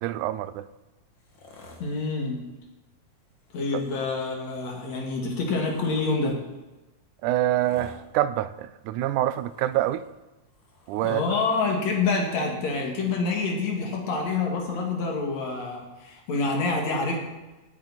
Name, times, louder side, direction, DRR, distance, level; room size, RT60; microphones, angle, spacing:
voice 1, 0.0-0.7 3.7-3.8 7.2-10.0 10.9-11.2, right 14 dB, 90° right, 2.1 m, -26 dB
sound 1, 1.1-2.2 3.4-4.1 4.9-6.1 7.4-8.0 9.0-10.1 10.5-11.4 12.4-12.5, left 2 dB, 40° left, 2.3 m, -49 dB
voice 2, 1.8-2.4 3.5-6.4 11.0-17.2, left 3 dB, 65° left, 3.2 m, -27 dB
16.0 x 9.2 x 4.1 m
omnidirectional pair, 3.5 m